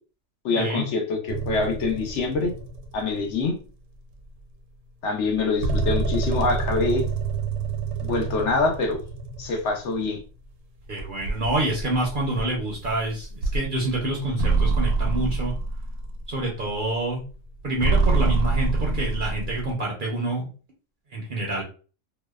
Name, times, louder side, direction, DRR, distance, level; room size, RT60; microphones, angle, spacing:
voice 1, 0.4-2.5 2.9-3.6 5.0-7.1 8.0-9.0 9.4-10.2, left 3 dB, 70° left, 2 dB, 0.9 m, -25 dB
sound 1, 1.3-3.4 4.1-4.2 5.4-10.4 11.0-16.8 17.3-19.7, right 3 dB, 80° right, 1.0 m, -27 dB
voice 2, 10.9-15.5 16.3-17.2 17.6-20.5 21.1-21.6, right 2 dB, 55° right, -2 dB, 0.6 m, -27 dB
2.6 x 2.1 x 2.2 m, 0.37 s
omnidirectional pair, 1.3 m